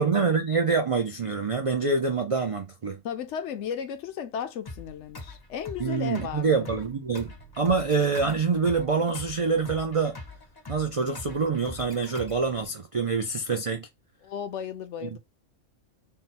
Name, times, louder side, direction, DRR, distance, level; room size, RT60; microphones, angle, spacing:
voice 1, 0.0-3.0 5.8-10.2 10.7-13.9 15.0-15.2, right 4 dB, 55° right, 0.3 m, -26 dB
voice 2, 3.0-6.7 14.2-15.2, left 8 dB, 70° left, 0.9 m, -35 dB
sound 1, 4.7-12.7, left 2 dB, 25° left, 0.5 m, -43 dB
3.8 x 2.1 x 4.1 m
omnidirectional pair, 1.3 m